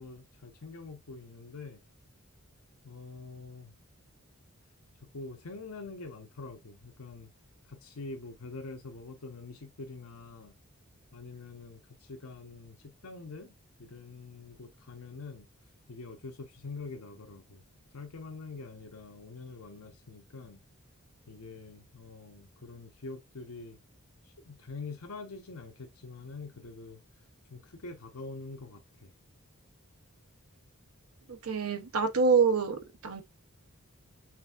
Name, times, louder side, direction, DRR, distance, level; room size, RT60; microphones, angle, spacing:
voice 1, 0.0-1.8 2.8-3.7 5.1-7.3 7.7-10.5 11.1-15.5 15.9-17.6 17.9-20.6 21.3-23.8 24.2-27.0 27.5-29.1, left 3 dB, 90° left, 0.9 m, -45 dB
voice 2, 31.4-33.2, right 5 dB, 85° right, 0.8 m, -26 dB
6.0 x 3.4 x 2.4 m
head